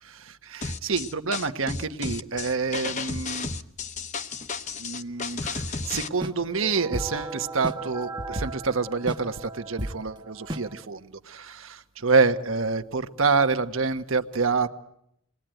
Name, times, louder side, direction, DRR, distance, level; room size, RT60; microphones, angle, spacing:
voice 1, 0.0-3.5 4.8-14.7, right 4 dB, 75° right, 8 dB, 1.2 m, -27 dB
sound 1, 0.6-6.1, left 4 dB, 35° left, 0.9 m, -33 dB
sound 2, 6.2-10.8, right 1 dB, 20° right, 1.0 m, -35 dB
28.5 x 20.0 x 9.1 m, 0.79 s
head